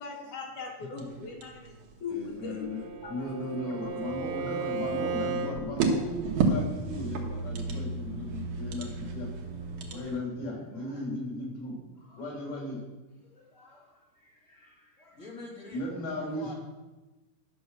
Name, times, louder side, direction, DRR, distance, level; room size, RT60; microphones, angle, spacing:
voice 1, 0.0-2.7 3.0-3.9, left 5 dB, 60° left, -1 dB, 3.3 m, -40 dB
sound 1, 1.0-10.2, right 4 dB, 65° right, 2.3 m, -34 dB
voice 2, 2.1-9.3 9.9-11.7 12.2-12.8 15.7-16.6, left 1 dB, 80° left, -3 dB, 5.4 m, -36 dB
Bowed string instrument, 2.4-5.6, right 4 dB, 80° right, 2.7 m, -35 dB
sound 2, 4.0-10.0, right 2 dB, 25° right, 2.9 m, -39 dB
voice 3, 9.5-10.1 10.5-11.0 12.0-12.4 13.2-16.5, left 2 dB, 25° left, -4 dB, 2.4 m, -50 dB
11.5 x 6.4 x 6.2 m, 1.1 s
omnidirectional pair, 4.4 m